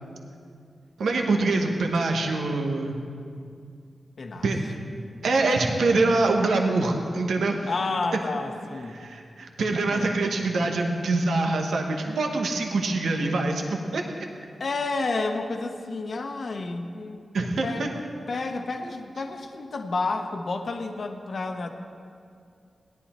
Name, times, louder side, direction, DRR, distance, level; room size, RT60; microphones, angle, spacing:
voice 1, 1.0-3.0 4.4-4.6 5.2-7.7 8.9-14.0 17.3-17.9, right 3 dB, 85° right, 2 dB, 1.1 m, -24 dB
voice 2, 4.2-4.5 7.7-9.0 9.8-10.2 14.6-17.9 18.3-21.7, left 3 dB, 65° left, 5 dB, 1.0 m, -30 dB
17.0 x 11.0 x 4.3 m, 2.3 s
cardioid pair, 45°, 0 cm